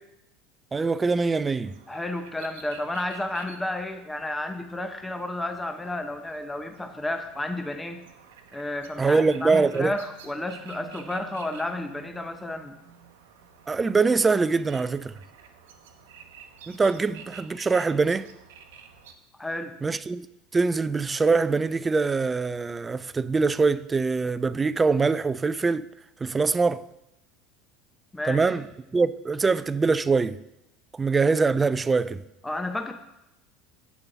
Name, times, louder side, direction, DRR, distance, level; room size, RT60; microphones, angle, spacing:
voice 1, 0.7-1.7 9.0-9.9 13.7-15.1 16.7-18.3 19.8-20.3 20.5-25.9 26.2-26.8 28.3-28.7 28.9-30.4 31.0-32.2, right 4 dB, 20° right, 0.4 m, -23 dB
sound 1, 1.6-19.1, right 7 dB, 70° right, 0.9 m, -50 dB
voice 2, 1.9-8.0 8.5-12.7 19.4-19.7 28.1-28.5 32.4-32.9, left 1 dB, 10° left, 0.8 m, -32 dB
8.3 x 6.7 x 5.8 m
figure-of-eight pair, 70°, 0 cm